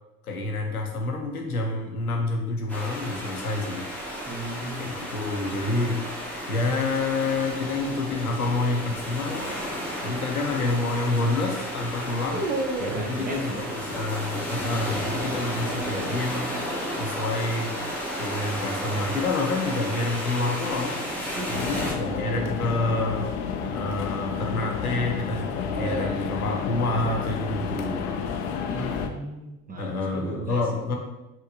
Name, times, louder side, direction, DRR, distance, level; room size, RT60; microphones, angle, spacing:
voice 1, 0.3-3.9 4.8-6.1 6.5-9.5 10.0-12.4 13.0-16.5 17.0-17.8 18.2-21.0 21.5-23.3 23.7-28.1 29.8-31.0, left 2 dB, 85° left, 1 dB, 0.8 m, -28 dB
sound 1, 2.7-21.9, equal, 5° left, 1.1 m, -33 dB
voice 2, 4.3-4.9 12.8-13.6 21.4-21.7 28.6-30.6, right 2 dB, 20° right, 1 dB, 0.8 m, -35 dB
sound 2, 11.9-13.2 15.3-16.3 18.7-19.1 21.9-24.2 25.3-26.6, right 2 dB, 70° right, 0.8 m, -35 dB
sound 3, 21.5-29.1, left 6 dB, 55° left, 0.6 m, -30 dB
4.5 x 3.6 x 2.7 m, 0.99 s
figure-of-eight pair, 65°, 42 cm